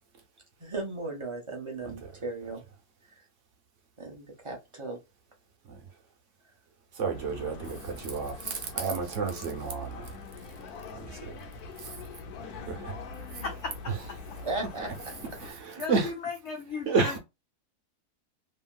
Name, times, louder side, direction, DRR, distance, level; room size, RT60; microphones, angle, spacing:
voice 1, 0.6-2.6 3.1-3.2 4.0-5.0 14.4-14.9 15.7-15.8, right 2 dB, 35° right, 0.5 m, -36 dB
voice 2, 6.9-10.2 10.9-11.4 11.8-11.9 12.7-13.0 13.3-13.4 13.9-14.0 15.4-16.1 16.9-17.2, right 4 dB, 55° right, 1.1 m, -31 dB
sound 1, 7.1-15.5, left 4 dB, 80° left, 1.1 m, -43 dB
voice 3, 13.4-13.9 15.8-17.2, left 4 dB, 60° left, 0.8 m, -35 dB
3.0 x 2.7 x 2.2 m
omnidirectional pair, 1.6 m